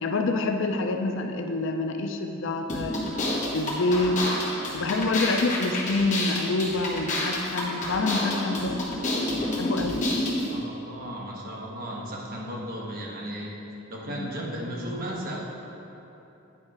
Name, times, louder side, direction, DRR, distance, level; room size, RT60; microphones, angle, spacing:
voice 1, 0.0-3.0 3.5-4.2 4.7-9.0 9.6-10.1 14.1-14.3, left 2 dB, 65° left, 5 dB, 0.5 m, -27 dB
sound 1, 2.7-10.5, left 1 dB, 40° left, 1.3 m, -29 dB
voice 2, 10.5-13.5 13.9-15.4, equal, 45° right, -3 dB, 1.1 m, -35 dB
9.5 x 3.2 x 4.8 m, 3.0 s
head